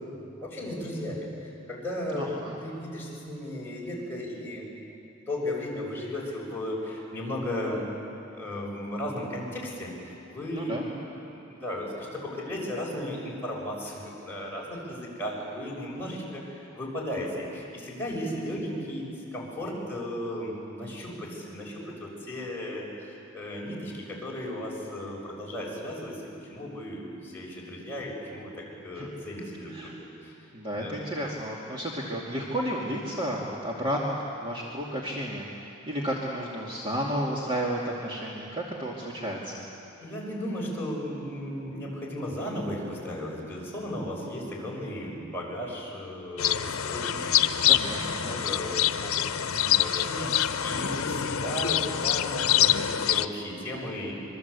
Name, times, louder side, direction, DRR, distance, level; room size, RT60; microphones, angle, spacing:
voice 1, 0.0-4.9 5.2-7.9 8.3-10.9 11.3-30.4 30.7-31.0 40.0-54.1, left 1 dB, 10° left, -4 dB, 6.6 m, -35 dB
voice 2, 2.1-2.6 10.5-10.8 29.0-29.1 29.7-29.9 30.5-39.7 47.7-48.6, equal, 25° right, -4 dB, 2.4 m, -32 dB
sound 1, 46.4-53.3, left 10 dB, 85° left, 0.8 m, -25 dB
26.5 x 23.0 x 8.3 m, 2.8 s
head